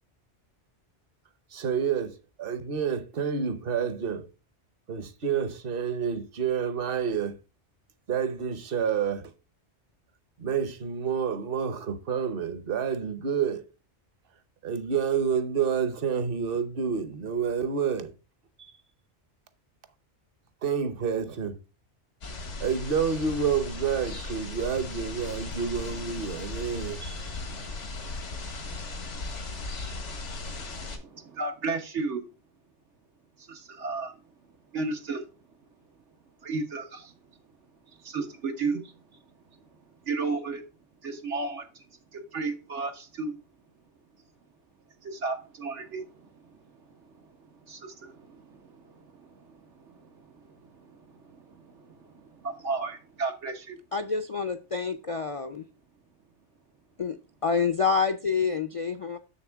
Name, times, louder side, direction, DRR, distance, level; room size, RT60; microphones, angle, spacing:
voice 1, 1.5-4.3 4.9-7.4 8.1-9.3 10.4-13.7 14.6-18.1 18.6-18.7 20.6-21.6 22.6-27.3, right 7 dB, 55° right, 1.0 m, -29 dB
sound 1, 22.2-31.0, left 3 dB, 90° left, 1.7 m, -37 dB
voice 2, 30.5-32.3 33.4-34.2 34.7-35.5 36.4-37.2 37.9-40.6 41.0-41.8 42.1-43.4 45.0-53.8, right 3 dB, 90° right, 1.6 m, -35 dB
voice 3, 53.9-55.6 57.0-57.2 57.4-59.2, left 5 dB, 50° left, 0.4 m, -27 dB
7.0 x 6.7 x 3.5 m
omnidirectional pair, 1.2 m